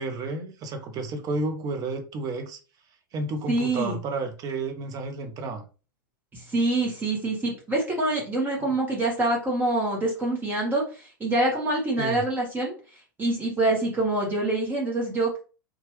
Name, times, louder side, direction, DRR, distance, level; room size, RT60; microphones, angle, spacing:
voice 1, 0.0-2.6 3.1-5.6 12.0-12.2, right 3 dB, 30° right, 0.7 m, -31 dB
voice 2, 3.5-4.0 6.3-12.7 13.2-15.4, right 2 dB, 15° right, 1.2 m, -25 dB
2.9 x 2.4 x 3.1 m
figure-of-eight pair, 95°, 12 cm